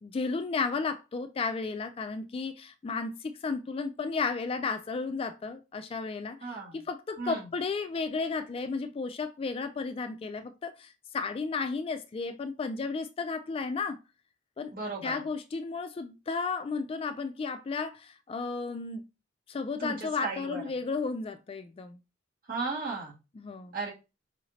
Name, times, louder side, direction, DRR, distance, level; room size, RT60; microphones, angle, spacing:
voice 1, 0.0-14.0 14.6-14.7 15.0-19.0 19.5-22.0 23.4-23.7, left 4 dB, 30° left, 0.3 m, -33 dB
voice 2, 6.4-6.8 7.2-7.5 14.7-15.2 19.8-20.7 22.5-23.2 23.7-23.9, right 3 dB, 50° right, 1.7 m, -35 dB
4.8 x 2.5 x 3.1 m
head